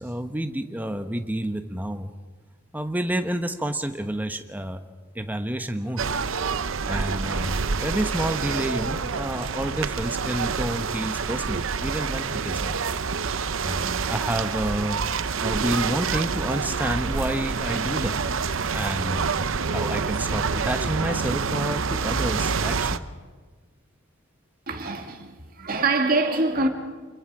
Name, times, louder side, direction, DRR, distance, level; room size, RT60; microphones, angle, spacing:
voice 1, 0.0-2.1 2.7-4.8 5.1-6.0 6.8-12.8 13.6-15.0 15.4-18.2 18.7-19.3 19.7-23.0, right 1 dB, 10° right, 1.0 m, -29 dB
sound 1, 6.0-23.0, right 5 dB, 70° right, 0.7 m, -27 dB
voice 2, 24.7-26.7, right 3 dB, 45° right, 2.1 m, -24 dB
28.5 x 22.0 x 4.9 m
head